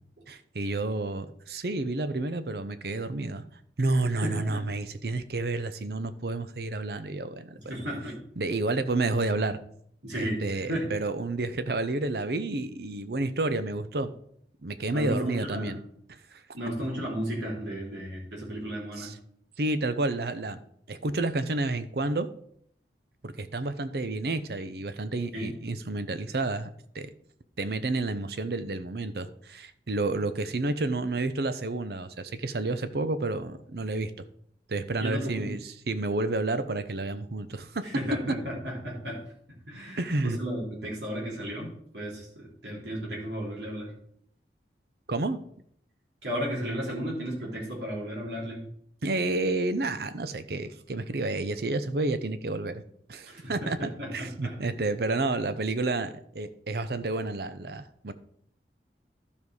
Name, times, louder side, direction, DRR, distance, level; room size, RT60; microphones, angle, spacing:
voice 1, 0.3-3.4 3.8-7.6 8.4-9.6 10.1-14.1 14.6-15.8 16.3-16.4 19.0-19.1 19.6-20.6 20.9-22.3 23.2-26.7 26.9-27.1 27.6-34.1 34.7-37.8 40.0-40.4 45.1-45.4 49.0-52.8 53.1-58.1, right 2 dB, 60° right, 12 dB, 0.7 m, -30 dB
voice 2, 4.1-4.6 7.6-8.2 10.0-10.9 14.9-15.8 16.5-19.1 25.3-25.5 35.0-35.5 37.8-39.2 39.7-43.9 46.2-48.6 53.3-54.6, equal, 80° right, -3 dB, 3.3 m, -34 dB
12.0 x 5.3 x 4.8 m, 0.66 s
head